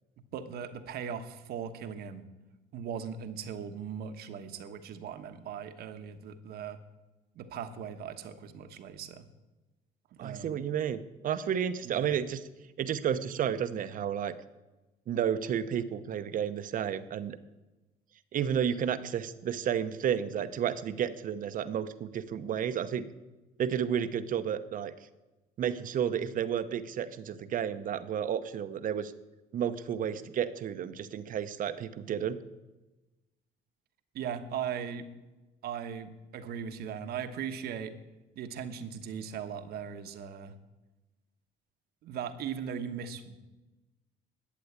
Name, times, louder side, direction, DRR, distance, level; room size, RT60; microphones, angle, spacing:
voice 1, 0.3-2.3 2.7-6.8 7.3-9.3 10.2-10.6 11.8-12.2 34.1-35.1 35.6-38.0 38.3-40.5 42.0-43.4, right 7 dB, 70° right, 8 dB, 1.2 m, -39 dB
voice 2, 10.2-12.4 12.8-14.3 15.1-17.4 18.3-23.1 23.6-24.9 25.6-29.1 29.5-32.4, right 8 dB, 55° right, 11 dB, 0.9 m, -31 dB
12.0 x 8.5 x 8.6 m, 1.1 s
cardioid pair, 110°, 17 cm